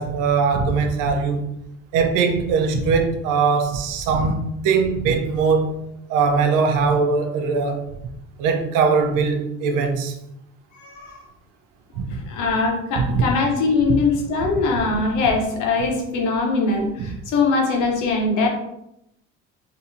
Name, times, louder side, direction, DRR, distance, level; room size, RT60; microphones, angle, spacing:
voice 1, 0.0-1.6 1.9-5.8 6.1-7.8 8.4-10.2 12.0-12.2 13.0-13.1 17.0-17.1, right 5 dB, 75° right, 0.7 m, -21 dB
voice 2, 10.7-11.3 12.1-18.5, left 3 dB, 70° left, 1.1 m, -22 dB
3.9 x 2.8 x 2.8 m
supercardioid pair, 95°, 32 cm